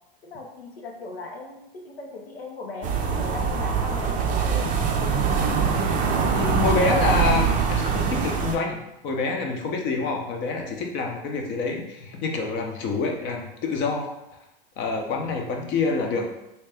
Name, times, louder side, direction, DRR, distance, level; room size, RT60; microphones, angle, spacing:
voice 1, 0.2-4.7 16.0-16.3, left 3 dB, 90° left, 1 dB, 0.9 m, -38 dB
sound 1, 2.8-8.6, right 5 dB, 30° right, 0.5 m, -23 dB
voice 2, 6.2-14.1 14.8-16.3, left 4 dB, 40° left, 2 dB, 0.7 m, -27 dB
3.2 x 2.9 x 3.3 m, 0.88 s
hypercardioid pair, 100°, 29 cm